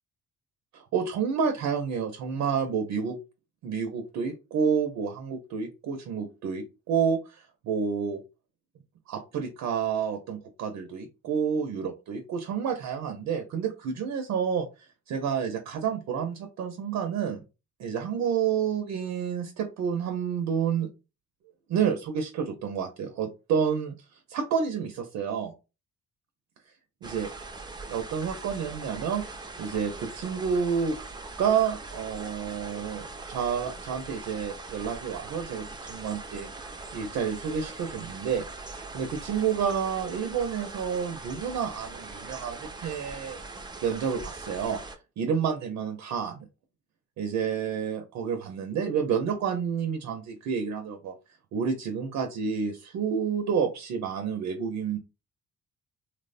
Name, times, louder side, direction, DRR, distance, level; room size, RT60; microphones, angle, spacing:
voice 1, 0.7-3.2 3.6-8.2 9.1-14.7 15.1-17.4 17.8-20.9 21.7-23.9 24.3-25.5 27.0-27.3 27.9-29.2 29.6-31.0 31.4-36.5 36.9-38.4 38.9-43.4 43.8-44.8 45.2-46.3 47.2-51.1 51.5-55.0, right 7 dB, 65° right, 5 dB, 0.6 m, -29 dB
sound 1, 27.0-45.0, right 3 dB, 15° right, 0.5 m, -41 dB
3.0 x 2.0 x 2.5 m, 0.29 s
supercardioid pair, 65°, 30 cm